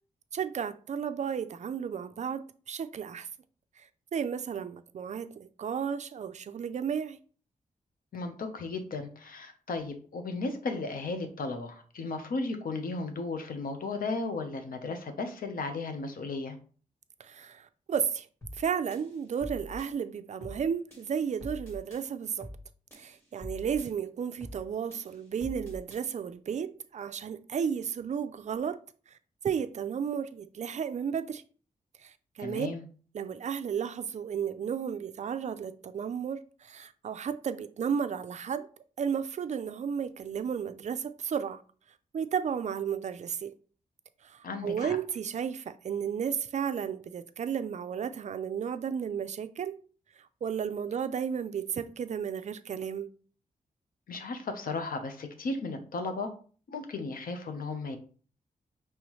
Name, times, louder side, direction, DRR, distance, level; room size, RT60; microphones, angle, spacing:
voice 1, 0.3-3.3 3.8-7.2 17.2-18.3 18.6-22.5 22.9-28.8 29.4-31.4 32.0-32.7 33.1-38.7 39.0-41.6 42.1-43.5 44.2-49.8 50.4-53.1, right 7 dB, 50° right, 0.4 m, -33 dB
voice 2, 8.1-16.6 32.4-32.8 44.4-45.0 54.1-56.3 56.7-58.0, left 3 dB, 75° left, 0.9 m, -35 dB
sound 1, 18.4-18.6 18.9-19.9 20.4-20.6 20.9-22.0 22.4-22.6 22.9-23.9 24.4-24.6 24.9-26.0, left 1 dB, 15° left, 1.7 m, -44 dB
5.5 x 3.1 x 3.1 m
wide cardioid pair, 105°, 15 cm